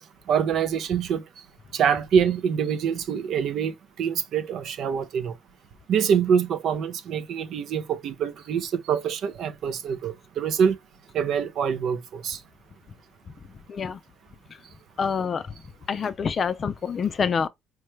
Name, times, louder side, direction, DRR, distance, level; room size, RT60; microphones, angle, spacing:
voice 1, 0.0-1.5 1.7-5.4 5.9-10.8 11.1-12.4, right 7 dB, 60° right, 0.5 m, -25 dB
voice 2, 13.7-14.0 15.0-15.4 15.9-17.5, left 6 dB, 40° left, 0.4 m, -26 dB
4.5 x 2.1 x 3.1 m
cardioid pair, 95°, 0 cm